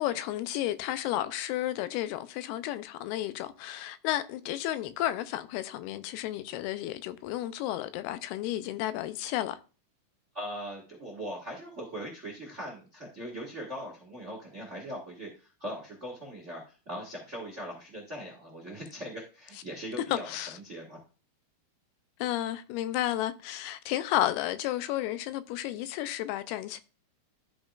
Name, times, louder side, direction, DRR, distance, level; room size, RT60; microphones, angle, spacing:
voice 1, 0.0-9.6 20.1-20.6 22.2-26.8, left 13 dB, 90° left, 2.6 m, -32 dB
voice 2, 10.3-20.3 20.5-21.0, equal, 50° right, 0.8 m, -40 dB
12.5 x 5.1 x 2.4 m
omnidirectional pair, 4.5 m